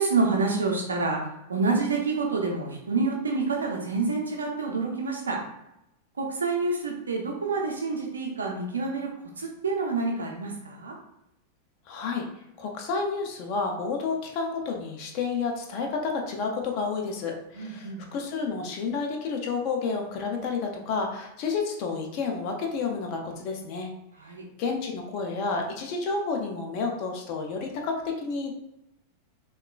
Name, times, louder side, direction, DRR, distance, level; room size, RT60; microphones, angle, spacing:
voice 1, 0.0-5.4 6.2-9.1 9.4-10.9 17.5-18.0 24.2-24.5, right 4 dB, 70° right, 0 dB, 0.6 m, -28 dB
voice 2, 11.9-12.3 12.6-23.9 24.6-28.5, left 4 dB, 45° left, 1 dB, 0.5 m, -30 dB
3.6 x 2.3 x 2.2 m, 0.84 s
figure-of-eight pair, 90°, 0 cm